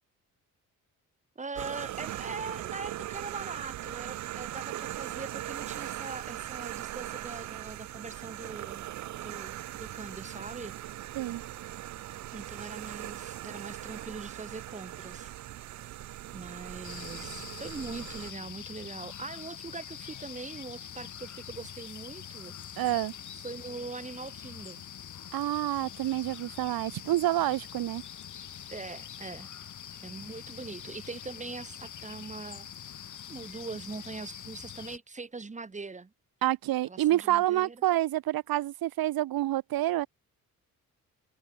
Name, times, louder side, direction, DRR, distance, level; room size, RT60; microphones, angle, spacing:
voice 1, 1.4-8.8 9.1-10.7 12.3-15.3 16.3-22.5 23.3-24.8 28.7-29.5 30.0-33.0 33.3-36.1 36.9-37.8, right 4 dB, 20° right, 2.1 m, -42 dB
sound 1, 1.6-18.3, right 14 dB, 55° right, 0.5 m, -40 dB
sound 2, 16.8-35.0, left 9 dB, 55° left, 5.3 m, -44 dB
voice 2, 22.8-23.1 25.3-28.0 36.4-40.1, right 14 dB, 85° right, 1.0 m, -28 dB
cardioid pair, 145°, 35 cm